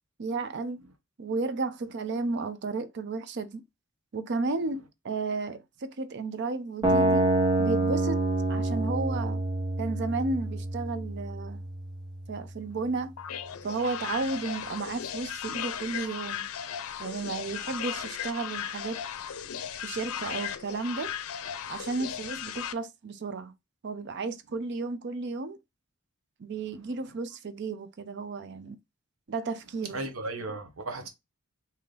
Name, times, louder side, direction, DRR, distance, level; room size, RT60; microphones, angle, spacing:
voice 1, 0.2-0.8 1.2-3.6 4.1-7.3 7.6-8.2 8.5-9.4 9.8-11.6 12.3-13.1 13.6-16.5 17.0-19.0 19.8-21.1 21.7-23.5 23.8-25.6 26.4-28.8 29.3-30.0, right 3 dB, 55° right, 0.5 m, -33 dB
sound 1, 6.8-12.8, right 2 dB, 20° right, 0.9 m, -28 dB
sound 2, 13.2-22.7, left 9 dB, 85° left, 0.5 m, -36 dB
voice 2, 26.6-26.9 29.9-31.1, right 2 dB, 70° right, 0.9 m, -37 dB
3.2 x 2.8 x 3.7 m
head